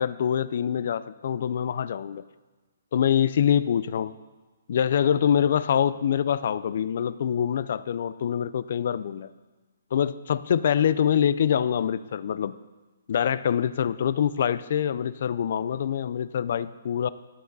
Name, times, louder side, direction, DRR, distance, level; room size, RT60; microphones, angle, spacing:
voice 1, 0.0-2.2 2.9-4.1 4.7-9.3 9.9-12.6 13.1-17.1, left 8 dB, 50° left, 16 dB, 0.4 m, -25 dB
14.0 x 11.0 x 4.0 m, 1.2 s
hypercardioid pair, 170°, 0 cm